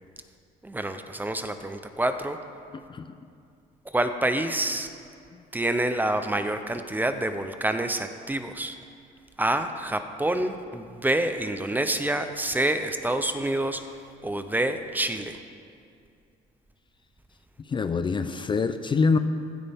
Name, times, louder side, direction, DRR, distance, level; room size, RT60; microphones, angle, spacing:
voice 1, 0.6-2.4 3.9-4.9 5.5-8.8 9.4-13.8 14.2-15.4, right 1 dB, 10° right, 8 dB, 0.7 m, -27 dB
voice 2, 17.7-19.2, left 4 dB, 30° left, 9 dB, 0.5 m, -25 dB
15.0 x 12.5 x 3.6 m, 2.4 s
cardioid pair, 110°, 17 cm